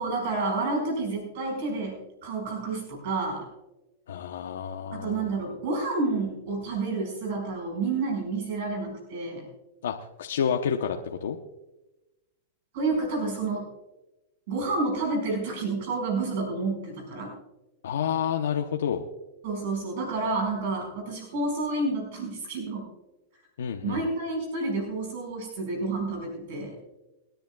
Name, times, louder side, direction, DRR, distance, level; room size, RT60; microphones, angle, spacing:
voice 1, 0.0-3.5 4.9-9.5 12.7-13.7 14.5-17.3 19.4-22.8 23.8-26.8, right 3 dB, 60° right, 1 dB, 5.2 m, -29 dB
voice 2, 4.1-5.3 9.8-11.4 17.8-19.0 23.6-24.0, left 8 dB, 85° left, 3 dB, 0.9 m, -29 dB
28.0 x 10.5 x 2.3 m, 1.0 s
hypercardioid pair, 135°, 0 cm